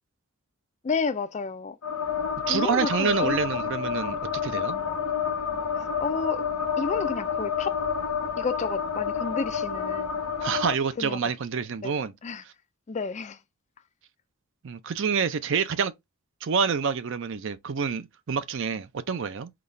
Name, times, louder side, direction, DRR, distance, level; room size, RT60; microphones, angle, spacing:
voice 1, 0.8-1.8 2.5-3.3 4.1-4.2 6.0-6.4 6.8-7.8 8.4-10.1 11.0-11.2 11.8-11.9 12.2-12.4 12.9-13.4, left 4 dB, 30° left, 0.4 m, -31 dB
sound 1, 1.8-10.7, left 7 dB, 85° left, 1.0 m, -29 dB
voice 2, 2.5-4.8 10.4-12.1 14.6-15.9 16.4-19.5, right 6 dB, 55° right, 0.4 m, -27 dB
4.0 x 2.3 x 3.1 m
head